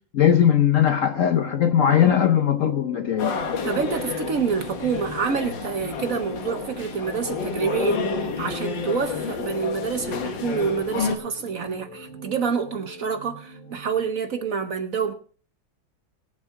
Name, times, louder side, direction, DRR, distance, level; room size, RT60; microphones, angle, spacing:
voice 1, 0.1-3.3, left 9 dB, 85° left, 0.7 m, -19 dB
sound 1, 1.1-14.1, right 1 dB, 20° left, 6.0 m, -43 dB
sound 2, 3.2-11.2, left 5 dB, 65° left, 2.0 m, -30 dB
voice 2, 3.6-15.1, right 6 dB, 55° right, 1.1 m, -27 dB
22.0 x 7.4 x 3.7 m
omnidirectional pair, 2.2 m